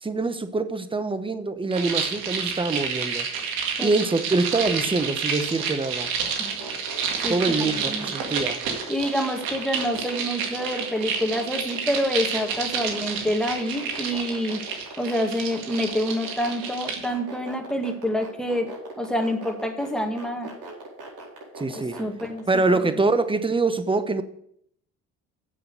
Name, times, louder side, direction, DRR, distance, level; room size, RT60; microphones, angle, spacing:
voice 1, 0.0-3.3 3.8-6.1 7.3-8.6 21.6-22.0 22.5-24.2, right 3 dB, 15° right, 1.0 m, -24 dB
sound 1, 1.7-17.1, right 6 dB, 90° right, 2.0 m, -30 dB
sound 2, 5.4-22.4, right 3 dB, 70° right, 4.4 m, -40 dB
voice 2, 7.2-8.1 8.9-14.6 15.0-18.7 19.0-20.5 21.7-22.4 22.8-22.9, equal, ahead, 2.0 m, -27 dB
7.5 x 7.0 x 6.8 m
supercardioid pair, 75°, 33 cm